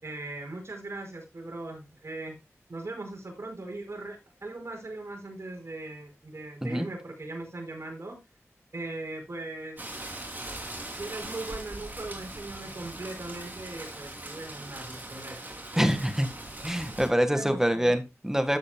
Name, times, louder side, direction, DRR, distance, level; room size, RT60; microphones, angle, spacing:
voice 1, 0.0-2.4 2.7-8.2 8.7-9.9 10.9-16.0 17.3-18.0, right 2 dB, 65° right, 1 dB, 5.1 m, -39 dB
Rain, 9.8-17.1, right 1 dB, 35° right, 3.1 m, -40 dB
voice 2, 15.8-16.3 16.6-18.6, equal, 10° right, 9 dB, 1.7 m, -25 dB
13.0 x 8.4 x 2.3 m, 0.23 s
wide cardioid pair, 55°, 5 cm